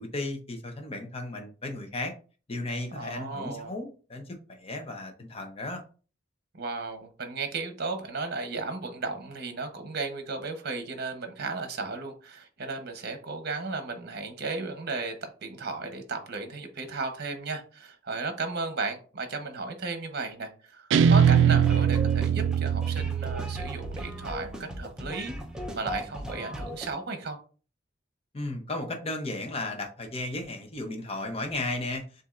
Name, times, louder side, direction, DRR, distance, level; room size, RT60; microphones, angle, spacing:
voice 1, 0.0-2.1 2.5-4.2 4.5-5.8 28.3-32.0, left 2 dB, 30° left, 0.8 m, -34 dB
voice 2, 2.9-3.7 6.5-25.4 25.7-27.4, right 3 dB, 60° right, 0.9 m, -35 dB
Guitar, 20.9-24.1, right 8 dB, 75° right, 0.3 m, -22 dB
sound 1, 21.2-26.9, equal, 5° right, 0.6 m, -38 dB
7.0 x 2.6 x 2.5 m
head